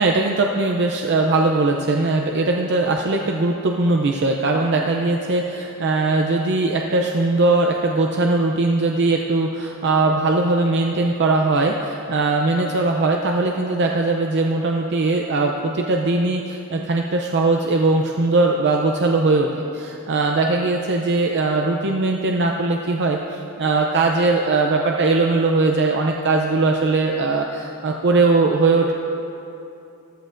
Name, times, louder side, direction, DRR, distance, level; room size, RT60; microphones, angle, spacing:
voice 1, 0.0-28.9, right 3 dB, 55° right, 1 dB, 0.6 m, -20 dB
14.5 x 13.0 x 2.6 m, 2.8 s
head